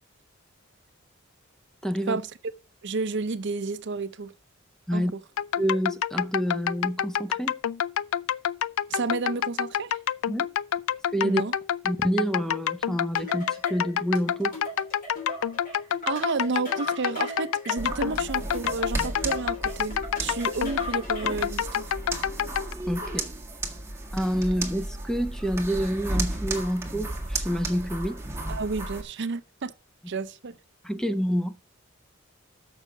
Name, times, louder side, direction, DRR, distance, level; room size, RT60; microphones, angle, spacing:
voice 1, 1.8-2.2 4.9-5.1 5.6-7.5 10.3-10.5 11.1-11.4 11.8-14.6 22.9-23.3 24.1-28.2 30.8-31.6, equal, 5° left, 0.7 m, -28 dB
voice 2, 2.8-4.3 4.9-5.1 8.9-10.0 11.2-11.5 16.1-21.8 28.5-29.7 30.1-30.6, right 4 dB, 60° right, 0.6 m, -31 dB
sound 1, 5.4-22.7, left 9 dB, 85° left, 0.4 m, -28 dB
sound 2, 13.2-21.5, equal, 45° left, 3.4 m, -40 dB
sound 3, 17.8-29.0, right 2 dB, 15° right, 1.8 m, -34 dB
6.9 x 6.4 x 7.5 m
head